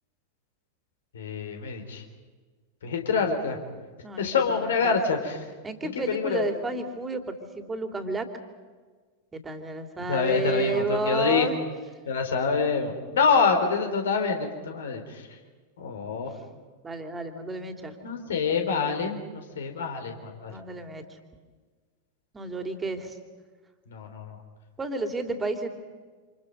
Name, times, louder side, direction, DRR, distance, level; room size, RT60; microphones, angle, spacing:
voice 1, 1.1-2.0 2.8-3.6 4.2-5.4 5.8-6.5 10.1-11.5 12.1-15.3 15.8-16.3 18.0-20.5 23.9-24.4, left 5 dB, 65° left, 4 dB, 4.0 m, -26 dB
voice 2, 4.0-5.0 5.6-8.3 9.3-11.6 16.8-17.9 20.5-21.2 22.3-23.2 24.8-25.7, right 3 dB, 15° right, 6 dB, 3.0 m, -31 dB
28.5 x 27.5 x 5.5 m, 1.5 s
figure-of-eight pair, 90°, 0 cm